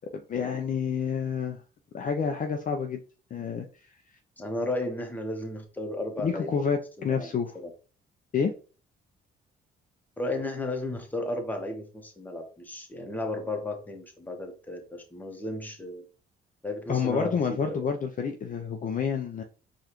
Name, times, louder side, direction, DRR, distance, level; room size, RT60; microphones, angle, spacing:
voice 1, 0.1-1.6 1.9-3.0 3.3-3.7 6.2-7.5 8.3-8.5 16.9-19.4, left 6 dB, 40° left, 0.5 m, -29 dB
voice 2, 4.4-6.6 7.0-7.3 7.5-7.7 10.2-16.0 16.6-17.8, left 1 dB, 10° left, 1.0 m, -34 dB
4.8 x 2.4 x 2.9 m
cardioid pair, 90°, 20 cm